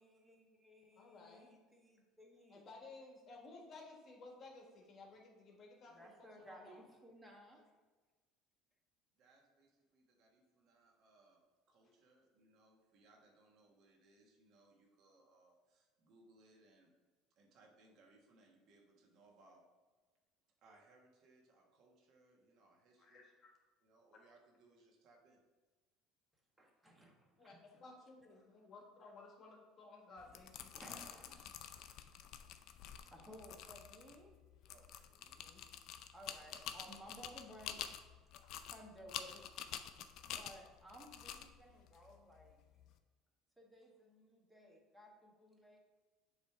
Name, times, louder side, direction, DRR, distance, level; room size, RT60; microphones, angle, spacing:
voice 1, 0.0-2.6 5.9-7.6 26.6-27.8 30.7-31.5 33.0-34.4 36.1-38.2 38.6-39.5 40.2-42.6 43.6-45.8, equal, 10° right, 0 dB, 1.4 m, -58 dB
voice 2, 1.0-1.5 2.5-6.8 7.6-7.7 23.0-23.5 27.4-30.9 35.3-35.6, left 3 dB, 45° left, 0 dB, 1.5 m, -57 dB
voice 3, 9.1-11.4 11.7-16.9 17.3-19.6 20.6-23.2 23.8-25.4 33.2-33.4 34.7-35.4, right 2 dB, 60° right, 1 dB, 1.3 m, -68 dB
sound 1, 30.2-42.9, left 9 dB, 60° left, 0.4 m, -49 dB
7.2 x 3.2 x 4.6 m, 1.3 s
supercardioid pair, 90°, 0 cm